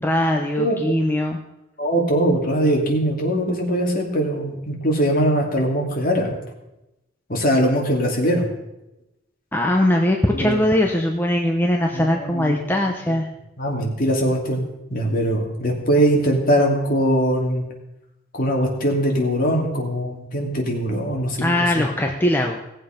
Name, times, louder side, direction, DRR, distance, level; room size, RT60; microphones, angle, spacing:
voice 1, 0.0-1.4 9.5-13.3 21.4-22.6, left 1 dB, 10° left, 1 dB, 0.8 m, -20 dB
voice 2, 1.8-6.4 7.3-8.5 10.3-10.6 11.9-12.6 13.6-17.6 18.3-21.8, equal, 45° left, 0 dB, 2.7 m, -21 dB
18.0 x 7.7 x 5.2 m, 0.93 s
head